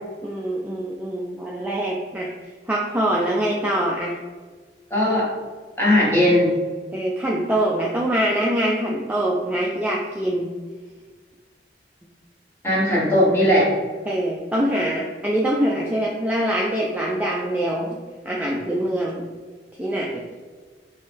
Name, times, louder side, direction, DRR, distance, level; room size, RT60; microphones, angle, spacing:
voice 1, 0.2-4.2 6.9-10.5 14.1-18.0 18.2-19.2 19.8-20.2, right 1 dB, 10° right, -3 dB, 0.3 m, -24 dB
voice 2, 4.9-5.3 5.8-6.5 12.6-13.7, left 1 dB, 15° left, -6 dB, 1.2 m, -18 dB
4.3 x 3.0 x 3.4 m, 1.5 s
head